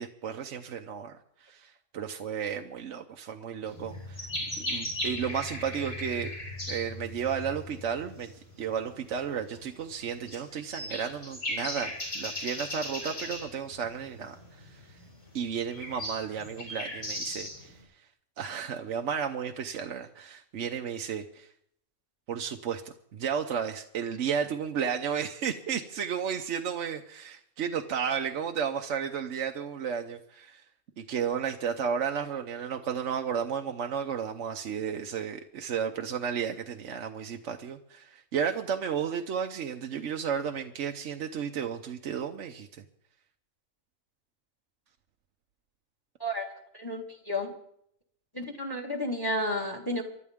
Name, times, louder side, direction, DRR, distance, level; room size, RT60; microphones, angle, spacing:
voice 1, 0.0-4.3 4.6-6.3 6.7-8.3 8.6-14.8 15.3-17.7 18.4-21.5 22.3-30.6 31.0-42.7, right 7 dB, 60° right, 4 dB, 1.0 m, -33 dB
sound 1, 3.6-17.8, left 1 dB, 65° left, 8.1 m, -37 dB
voice 2, 46.7-47.5 48.3-50.0, left 1 dB, 15° left, 3 dB, 1.7 m, -31 dB
24.5 x 12.0 x 3.6 m, 0.70 s
omnidirectional pair, 1.5 m